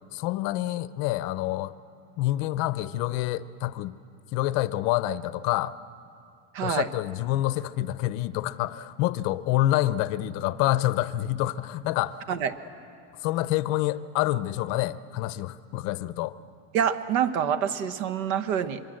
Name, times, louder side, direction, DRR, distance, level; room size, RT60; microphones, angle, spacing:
voice 1, 0.1-1.7 2.2-3.9 4.3-5.7 6.6-12.2 13.2-16.3, left 15 dB, 40° left, 15 dB, 0.6 m, -27 dB
voice 2, 6.5-6.9 12.3-12.5 16.7-18.8, right 8 dB, 90° right, 11 dB, 1.4 m, -26 dB
25.0 x 24.0 x 7.7 m, 2.5 s
cardioid pair, 170°, 41 cm